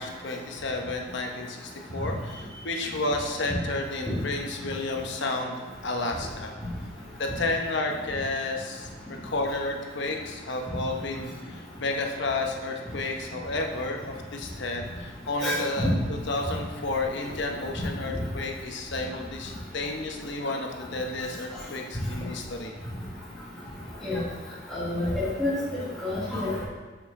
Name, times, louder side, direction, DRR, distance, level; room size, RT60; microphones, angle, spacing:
voice 1, 0.0-5.5 5.8-6.5 7.2-8.9 9.2-22.7, left 2 dB, 65° left, 2 dB, 0.9 m, -31 dB
voice 2, 15.4-15.9 24.0-24.2 24.7-25.5 26.0-26.6, left 2 dB, 5° left, -11 dB, 1.6 m, -28 dB
6.5 x 6.1 x 3.7 m, 1.4 s
head